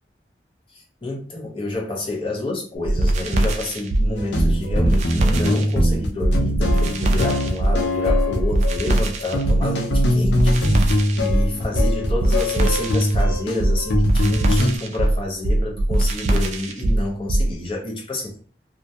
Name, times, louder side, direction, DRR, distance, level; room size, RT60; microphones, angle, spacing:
voice 1, 1.0-18.4, left 2 dB, 30° left, 0.7 m, -29 dB
sound 1, 2.8-17.5, right 1 dB, 40° right, 0.3 m, -21 dB
sound 2, 4.2-14.8, left 1 dB, 80° left, 0.5 m, -23 dB
2.3 x 2.1 x 2.7 m
head